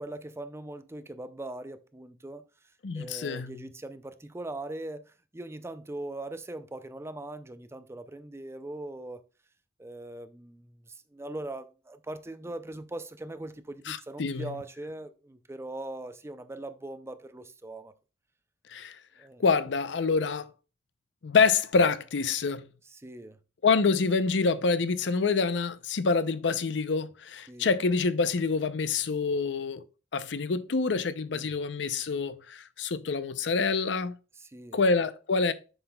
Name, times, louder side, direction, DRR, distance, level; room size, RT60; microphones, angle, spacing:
voice 1, 0.0-2.4 2.9-9.2 9.8-17.9 19.2-19.4 22.8-23.4 27.5-27.7 31.3-31.6 34.4-34.8, right 2 dB, 15° right, 0.5 m, -41 dB
voice 2, 2.8-3.6 13.9-14.5 18.7-19.0 19.4-20.5 21.2-22.7 23.6-29.8 30.1-34.1 34.7-35.5, left 4 dB, 75° left, 0.6 m, -26 dB
7.9 x 5.9 x 2.2 m
head